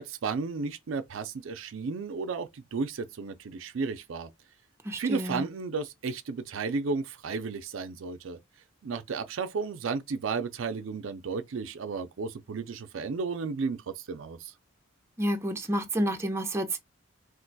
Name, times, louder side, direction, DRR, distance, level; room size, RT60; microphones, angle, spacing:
voice 1, 0.0-4.3 5.0-8.4 8.8-14.5, right 4 dB, 70° right, 0.4 m, -33 dB
voice 2, 4.8-5.5 15.2-16.8, right 1 dB, 15° right, 0.5 m, -29 dB
2.5 x 2.2 x 3.9 m
head